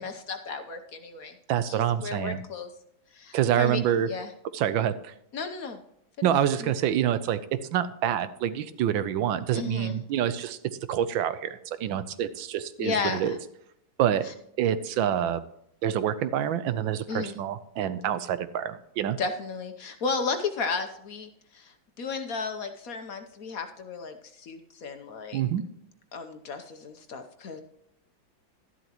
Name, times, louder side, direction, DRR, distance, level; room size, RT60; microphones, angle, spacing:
voice 1, 0.0-1.4 1.7-2.7 3.1-3.8 4.1-4.3 5.3-5.8 6.2-6.3 6.6-6.7 9.5-10.0 12.8-13.4 14.2-14.3 17.1-17.4 19.2-25.4 26.1-27.6, left 4 dB, 55° left, 6 dB, 1.1 m, -34 dB
voice 2, 1.5-2.4 3.3-4.1 4.5-5.1 6.2-7.4 7.7-10.6 10.9-13.4 14.0-14.3 14.6-15.4 15.8-19.2 25.3-25.6, right 10 dB, 85° right, 13 dB, 1.5 m, -27 dB
12.5 x 11.0 x 3.0 m, 0.77 s
omnidirectional pair, 2.1 m